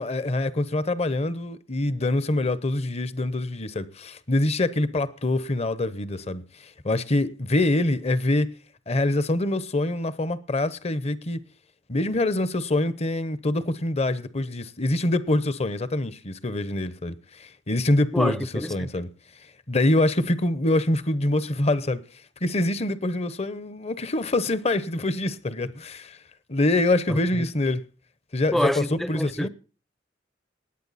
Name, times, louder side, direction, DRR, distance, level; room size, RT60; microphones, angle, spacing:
voice 1, 0.0-6.4 6.8-8.5 8.9-11.4 11.9-18.4 18.7-19.1 19.7-22.0 22.4-26.2 26.5-27.8 28.3-29.5, left 2 dB, 35° left, 0.8 m, -25 dB
voice 2, 18.1-18.9 27.1-27.2 28.5-29.5, equal, ahead, 0.6 m, -27 dB
19.0 x 9.2 x 4.1 m
head